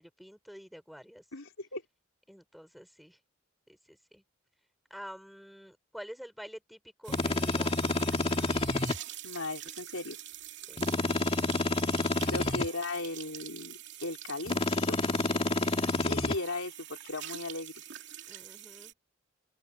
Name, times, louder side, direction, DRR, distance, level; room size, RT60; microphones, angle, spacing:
voice 1, 0.0-1.3 2.3-3.2 3.7-4.2 4.9-7.8 10.7-10.8 18.3-18.9, equal, ahead, 3.8 m, -48 dB
voice 2, 1.3-1.8 9.2-10.2 12.3-15.0 16.0-17.7, left 2 dB, 75° left, 4.2 m, -37 dB
sound 1, 7.0-18.9, right 12 dB, 60° right, 2.9 m, -46 dB
sound 2, 7.1-9.0 10.8-12.7 14.5-16.4, left 2 dB, 30° left, 1.9 m, -29 dB
open air
head